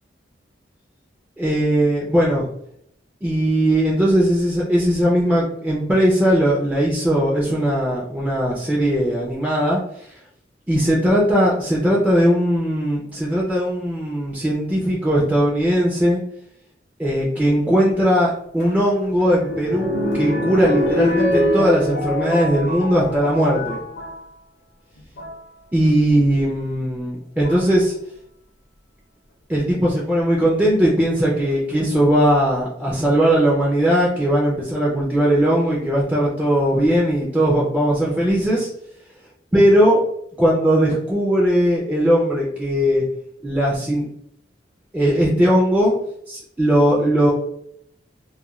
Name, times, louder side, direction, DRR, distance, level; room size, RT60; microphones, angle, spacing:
voice 1, 1.4-2.5 3.2-9.8 10.7-16.2 17.0-23.8 25.7-27.9 29.5-38.7 39.5-40.0 40.4-43.0 43.4-44.1 44.9-46.0 46.3-47.3, equal, 10° right, -5 dB, 0.4 m, -19 dB
sound 1, 18.6-24.2 25.0-25.4 26.6-26.7 27.4-27.8 29.9-30.5 31.2-31.3 31.5-31.6, left 1 dB, 65° left, 0.6 m, -24 dB
2.3 x 2.2 x 2.9 m, 0.70 s
head